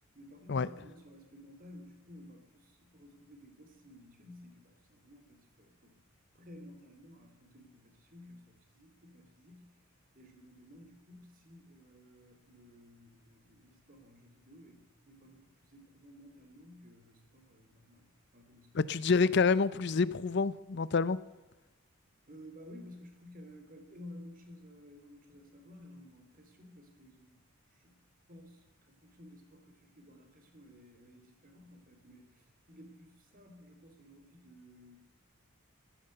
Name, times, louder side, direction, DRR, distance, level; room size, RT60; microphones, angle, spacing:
voice 1, 0.1-6.0 6.3-9.7 10.1-19.2 22.3-27.4 27.7-28.0 28.3-35.0, left 1 dB, 40° right, 3.2 m, -54 dB
voice 2, 18.7-21.2, left 4 dB, 55° left, 0.6 m, -28 dB
15.5 x 13.5 x 6.8 m
head